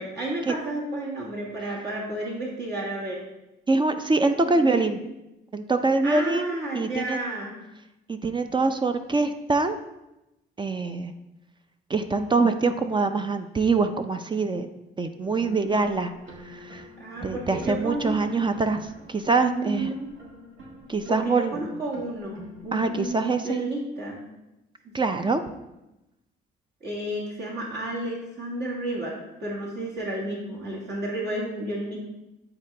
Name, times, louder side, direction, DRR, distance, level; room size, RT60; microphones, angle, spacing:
voice 1, 0.0-3.2 4.5-4.9 6.0-7.5 17.0-18.1 19.3-20.1 21.1-24.2 24.8-25.2 26.8-29.1 29.4-32.0, right 1 dB, 60° right, -4 dB, 1.8 m, -32 dB
voice 2, 3.7-5.0 5.5-6.4 6.7-7.2 8.1-9.8 10.6-11.1 11.9-14.7 15.0-16.1 16.4-16.9 17.2-19.9 20.9-21.7 22.7-23.7 24.9-25.4, right 3 dB, 25° right, 8 dB, 0.4 m, -24 dB
sound 1, 15.2-23.1, equal, 80° right, 1.5 m, -46 dB
9.0 x 3.9 x 3.3 m, 0.94 s
cardioid pair, 90°, 20 cm